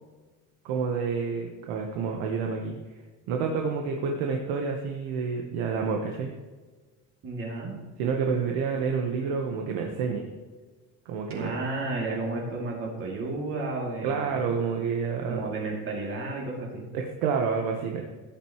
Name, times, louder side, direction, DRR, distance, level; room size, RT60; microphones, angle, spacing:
voice 1, 0.6-3.0 3.3-6.3 8.0-10.3 11.0-11.6 14.0-15.4 16.9-18.0, right 5 dB, 85° right, 2 dB, 1.3 m, -29 dB
voice 2, 7.2-7.8 8.3-8.4 11.3-14.4 15.2-16.9, right 3 dB, 35° right, -2 dB, 2.8 m, -32 dB
16.0 x 9.0 x 3.1 m, 1.3 s
cardioid pair, 165°, 36 cm